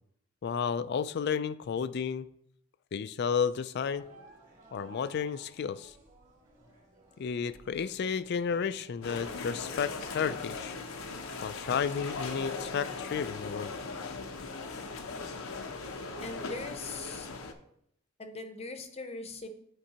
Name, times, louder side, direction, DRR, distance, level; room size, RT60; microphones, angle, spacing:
voice 1, 0.4-2.3 2.9-4.0 4.7-5.9 7.2-10.8 11.4-13.7, left 6 dB, 55° left, 14 dB, 0.3 m, -32 dB
sound 1, 3.7-12.9, right 1 dB, 40° right, 2.3 m, -57 dB
sound 2, 9.0-17.5, left 4 dB, 90° left, 0.8 m, -39 dB
voice 2, 16.2-17.3 18.2-19.5, left 3 dB, 30° left, 7 dB, 0.7 m, -40 dB
11.0 x 4.5 x 2.9 m, 0.71 s
head